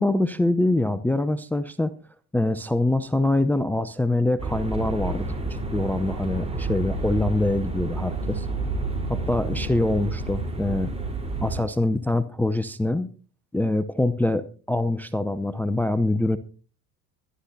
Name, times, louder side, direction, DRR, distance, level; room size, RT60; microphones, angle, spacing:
voice 1, 0.0-1.9 2.3-8.5 9.1-10.9 11.4-13.1 13.5-16.4, left 2 dB, 5° left, 12 dB, 0.7 m, -24 dB
sound 1, 4.4-11.6, right 2 dB, 15° right, 4.0 m, -30 dB
24.0 x 11.5 x 2.7 m, 0.38 s
figure-of-eight pair, 65°, 45 cm